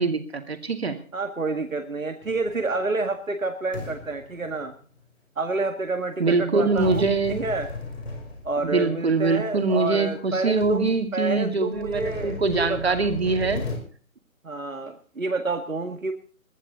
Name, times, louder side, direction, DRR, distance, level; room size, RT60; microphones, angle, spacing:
voice 1, 0.0-1.0 6.2-7.4 8.6-13.6, right 4 dB, 50° right, 8 dB, 2.5 m, -23 dB
voice 2, 1.1-4.7 5.4-7.1 7.4-7.7 8.4-13.1 14.4-16.1, right 3 dB, 70° right, 7 dB, 1.8 m, -29 dB
sound 1, 2.2-2.9 3.7-5.0 6.8-8.9 9.7-9.8 10.3-10.4 10.6-10.9 11.7-13.8, left 3 dB, 45° left, 5.8 m, -36 dB
20.0 x 12.5 x 4.1 m, 0.42 s
figure-of-eight pair, 150°, 42 cm